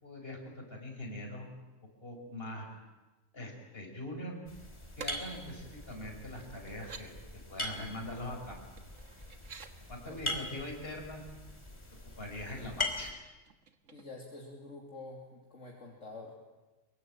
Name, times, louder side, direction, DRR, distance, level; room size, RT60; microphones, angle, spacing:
voice 1, 0.0-1.5 2.0-2.8 3.3-4.4 5.0-7.1 7.5-8.6 9.9-11.2 12.2-13.1, left 1 dB, 50° left, 1 dB, 5.7 m, -42 dB
sound 1, 4.5-13.1, left 2 dB, 20° left, 3.0 m, -41 dB
sound 2, 5.0-5.1 5.9-6.0 6.7-7.1 8.8-9.7 11.5-11.6 11.9-12.4 13.4-14.4 14.8-14.9, right 6 dB, 75° right, 1.9 m, -49 dB
voice 2, 10.0-10.5 13.9-16.4, left 2 dB, 70° left, -1 dB, 3.2 m, -47 dB
24.0 x 22.5 x 9.0 m, 1.2 s
omnidirectional pair, 1.3 m